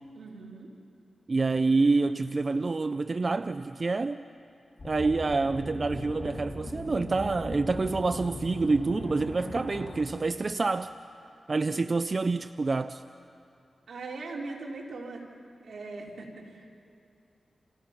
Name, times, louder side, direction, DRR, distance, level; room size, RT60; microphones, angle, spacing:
voice 1, 0.1-0.7 13.9-15.2 15.6-16.7, right 3 dB, 85° right, -1 dB, 3.6 m, -40 dB
voice 2, 1.3-4.2 4.8-10.9 11.5-13.0, right 3 dB, 45° right, 11 dB, 0.5 m, -27 dB
sound 1, 4.8-9.9, left 2 dB, 50° left, 6.3 m, -39 dB
29.0 x 28.0 x 5.8 m, 2.6 s
cardioid pair, 65°, 0 cm